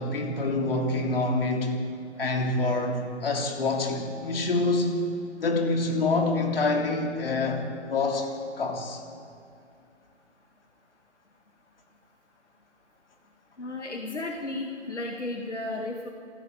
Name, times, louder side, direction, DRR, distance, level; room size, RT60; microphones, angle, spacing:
voice 1, 0.0-1.8 2.2-5.0 5.4-8.3 8.6-9.0, left 2 dB, 50° left, 2 dB, 3.5 m, -26 dB
voice 2, 13.6-16.1, left 2 dB, 75° left, 2 dB, 2.2 m, -34 dB
27.0 x 12.5 x 8.7 m, 2.4 s
figure-of-eight pair, 140°, 36 cm